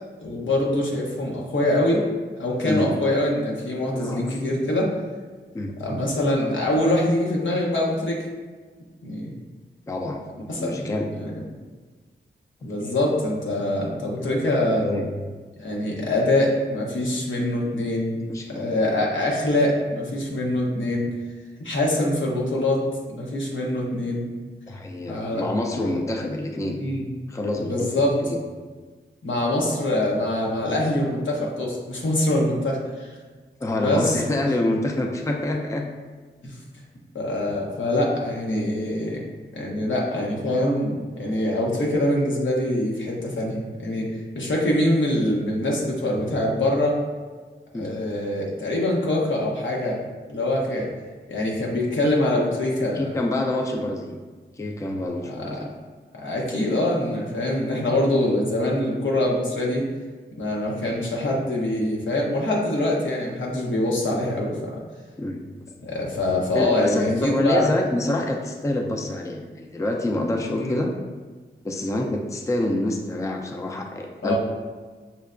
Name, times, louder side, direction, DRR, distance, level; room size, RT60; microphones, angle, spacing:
voice 1, 0.2-2.0 2.4-4.9 5.8-8.2 9.0-9.3 10.5-11.4 12.6-14.8 15.6-18.2 18.5-21.1 21.6-22.8 23.1-24.3 25.1-25.5 25.8-25.9 26.7-27.0 27.6-28.2 29.2-33.1 33.8-34.2 36.4-36.6 37.1-39.2 39.5-44.1 44.3-47.0 47.7-50.0 50.3-50.9 51.3-53.1 55.3-55.6 56.1-59.9 60.4-64.8 65.8-67.7 70.6-70.8 74.2-74.4, left 1 dB, 75° left, -3 dB, 0.8 m, -24 dB
voice 2, 3.9-4.4 5.5-5.7 9.9-10.2 10.6-11.1 12.6-12.7 14.8-15.1 18.3-18.7 24.7-26.8 27.3-28.4 33.6-35.9 44.4-44.5 47.7-47.9 52.9-54.2 54.6-55.7 65.2-65.4 66.5-70.9 71.6-74.4, left 1 dB, 15° left, 2 dB, 0.4 m, -27 dB
5.5 x 2.1 x 2.4 m, 1.4 s
cardioid pair, 55°, 20 cm